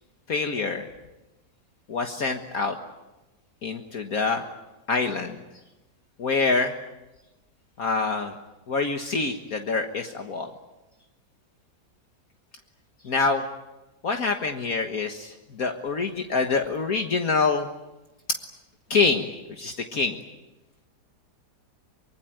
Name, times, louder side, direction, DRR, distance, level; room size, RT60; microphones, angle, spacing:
voice 1, 0.3-0.8 1.9-2.8 3.6-4.4 4.9-5.4 6.2-6.7 7.8-8.4 8.7-10.5 13.0-13.4 14.0-17.7 18.9-20.2, left 4 dB, 60° left, 5 dB, 1.9 m, -26 dB
24.5 x 23.0 x 9.3 m, 1.0 s
omnidirectional pair, 1.7 m